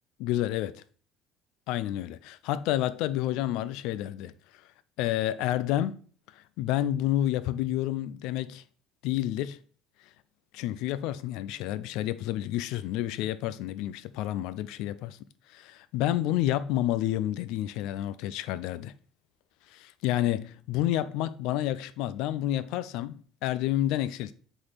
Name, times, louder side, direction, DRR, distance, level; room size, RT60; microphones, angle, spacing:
voice 1, 0.2-0.8 1.7-4.3 5.0-6.0 6.6-8.6 9.0-9.6 10.5-15.2 15.5-18.9 19.7-24.3, left 13 dB, 75° left, 0.5 m, -29 dB
7.7 x 4.0 x 4.1 m
supercardioid pair, 85°, 0 cm